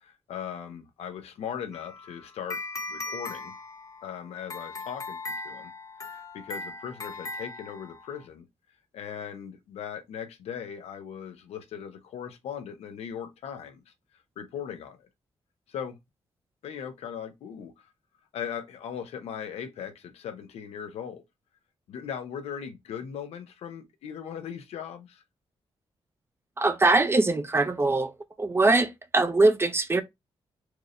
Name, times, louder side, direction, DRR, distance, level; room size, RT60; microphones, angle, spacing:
voice 1, 0.0-2.6 2.9-3.5 4.0-5.2 5.4-5.7 6.1-8.4 8.9-13.9 14.4-15.1 15.7-16.0 16.6-17.7 18.3-21.2 21.9-25.2, left 8 dB, 90° left, 0.8 m, -38 dB
sound 1, 1.7-8.2, left 2 dB, 35° left, 0.6 m, -39 dB
voice 2, 26.6-28.1 28.4-30.0, right 2 dB, 25° right, 0.6 m, -22 dB
4.6 x 2.5 x 3.1 m
cardioid pair, 90°, 10 cm